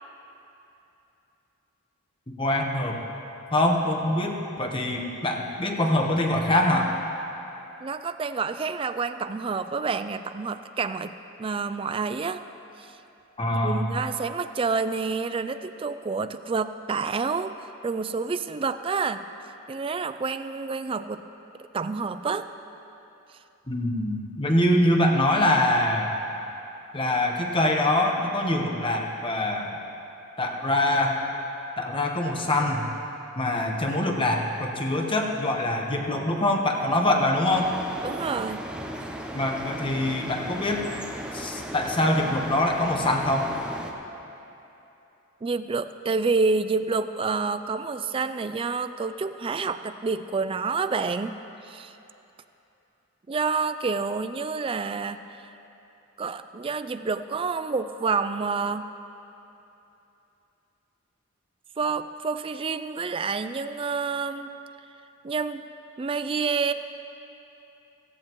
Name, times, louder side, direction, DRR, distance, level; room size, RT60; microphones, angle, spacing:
voice 1, 2.3-3.0 3.5-6.9 13.4-13.9 23.7-26.1 26.9-29.8 30.4-31.2 31.8-32.9 33.4-37.7 39.3-40.9 41.3-43.5, left 1 dB, 25° left, 1 dB, 1.1 m, -24 dB
voice 2, 7.8-12.4 12.8-12.9 13.6-17.5 17.8-19.2 19.7-21.2 21.7-22.5 38.0-38.7 45.4-52.0 53.3-55.5 56.2-58.9 61.8-64.5 65.2-65.6 66.0-66.7, right 4 dB, 25° right, 11 dB, 0.3 m, -28 dB
sound 1, 37.5-43.9, right 1 dB, 5° right, 0.7 m, -36 dB
17.5 x 15.5 x 3.1 m, 3.0 s
head